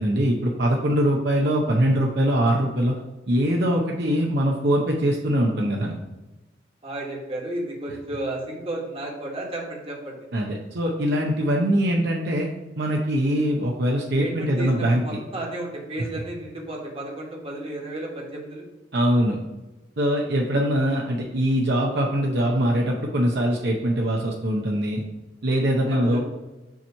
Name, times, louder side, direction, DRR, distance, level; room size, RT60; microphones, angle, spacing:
voice 1, 0.0-3.0 3.3-5.9 10.3-12.5 12.8-15.2 18.9-19.4 20.0-25.0 25.4-26.2, equal, 60° right, 0 dB, 0.7 m, -22 dB
voice 2, 6.8-10.3 14.2-18.6 25.8-26.2, right 1 dB, 30° right, -1 dB, 1.3 m, -33 dB
7.1 x 3.0 x 5.4 m, 1.1 s
head